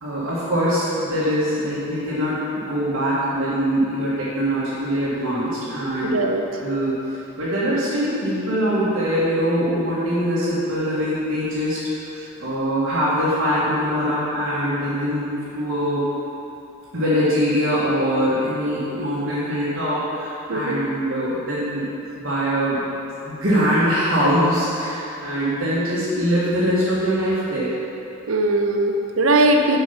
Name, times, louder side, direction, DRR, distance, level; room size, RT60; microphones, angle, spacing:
voice 1, 0.0-6.2 6.6-11.8 12.4-16.0 16.9-21.9 22.2-22.8 23.2-27.7, equal, 70° right, -10 dB, 1.5 m, -22 dB
voice 2, 6.0-6.4 20.5-20.8 28.3-29.8, right 1 dB, 85° right, 3 dB, 0.7 m, -19 dB
7.1 x 4.7 x 5.6 m, 2.9 s
head